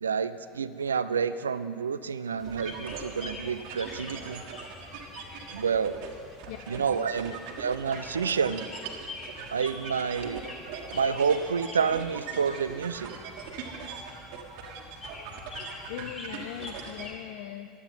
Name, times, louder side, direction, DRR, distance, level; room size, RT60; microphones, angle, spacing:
voice 1, 0.0-4.4 5.5-6.0 6.7-8.7 9.5-10.4 10.9-13.1, right 6 dB, 75° right, 13 dB, 0.4 m, -29 dB
sound 1, 2.4-17.1, left 3 dB, 30° left, 2.8 m, -46 dB
sound 2, 2.4-17.1, right 5 dB, 60° right, 1.8 m, -41 dB
voice 2, 6.5-7.1 15.9-17.7, left 11 dB, 60° left, 8 dB, 0.5 m, -40 dB
15.5 x 11.0 x 5.7 m, 2.3 s
figure-of-eight pair, 75°, 0 cm